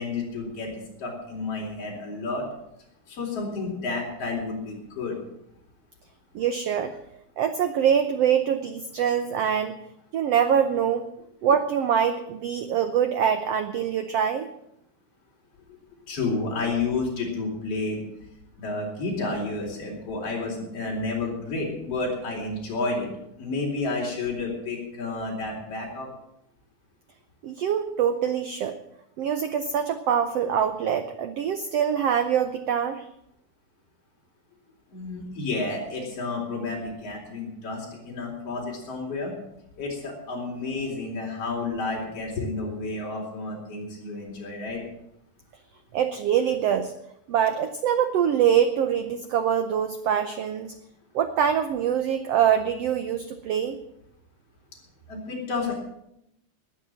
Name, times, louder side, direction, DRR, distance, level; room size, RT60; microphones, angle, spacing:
voice 1, 0.0-2.4 3.1-5.2 15.7-15.8 16.1-18.0 18.6-23.1 23.4-26.1 34.9-39.3 39.8-44.8 55.1-55.8, left 3 dB, 45° left, -2 dB, 4.8 m, -31 dB
voice 2, 6.3-7.0 7.4-9.8 10.1-11.1 11.4-14.5 27.4-28.8 29.2-33.1 45.9-46.9 47.3-50.7 51.1-53.8, right 8 dB, 80° right, 8 dB, 1.4 m, -24 dB
19.5 x 7.0 x 7.6 m, 0.80 s
omnidirectional pair, 3.9 m